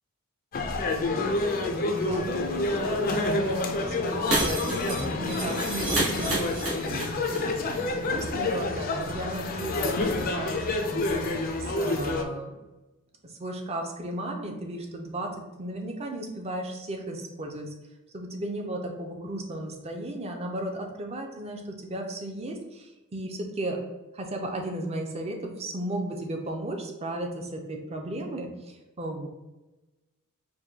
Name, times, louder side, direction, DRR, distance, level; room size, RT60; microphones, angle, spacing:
sound 1, 0.5-12.2, left 2 dB, 40° left, 0.4 m, -28 dB
voice 1, 1.9-12.5 13.2-17.7 18.1-23.8 24.1-29.3, right 1 dB, 30° right, 2 dB, 0.5 m, -35 dB
Shatter, 4.3-7.4 7.6-7.7 8.0-8.1, right 2 dB, 85° right, 1.3 m, -29 dB
4.7 x 2.2 x 2.7 m, 1.1 s
head